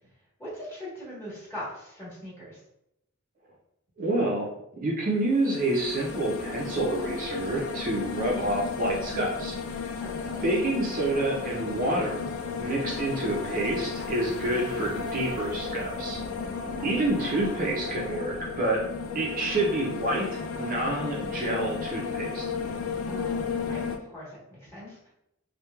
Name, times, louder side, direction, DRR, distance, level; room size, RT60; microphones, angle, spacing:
voice 1, 0.4-2.6 10.0-10.4 16.7-17.0 23.0-25.1, left 1 dB, 10° left, -8 dB, 1.1 m, -41 dB
voice 2, 4.0-9.9 10.4-12.3 12.6-16.2 16.8-18.8 19.1-20.3 20.6-22.5, right 1 dB, 40° right, -3 dB, 0.4 m, -28 dB
sound 1, 5.2-24.0, left 5 dB, 65° left, 0.3 m, -34 dB
2.9 x 2.1 x 2.2 m, 0.81 s
head